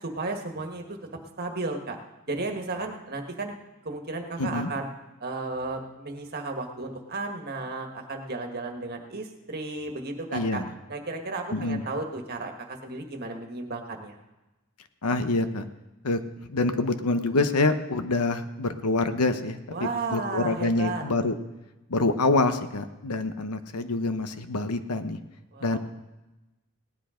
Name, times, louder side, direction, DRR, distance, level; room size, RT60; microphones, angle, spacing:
voice 1, 0.0-1.0 1.4-2.0 2.3-3.5 3.8-4.9 5.2-10.6 10.9-14.1 19.7-21.0 25.5-25.8, right 3 dB, 45° right, 3 dB, 1.6 m, -34 dB
voice 2, 4.4-4.7 10.3-10.7 11.5-11.8 15.0-15.6 16.0-16.2 16.5-21.3 21.9-25.2 25.6-25.8, left 2 dB, 90° left, 9 dB, 1.0 m, -26 dB
17.5 x 10.5 x 5.1 m, 1.0 s
head